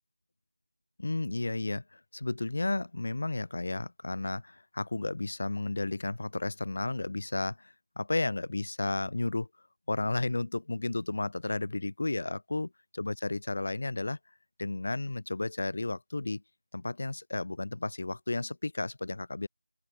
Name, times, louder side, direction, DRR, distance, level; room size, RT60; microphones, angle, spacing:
voice 1, 1.0-9.5 9.9-14.2 14.6-16.4 16.7-19.5, left 2 dB, 50° left, 2.1 m, -33 dB
open air
figure-of-eight pair, 175°, 0 cm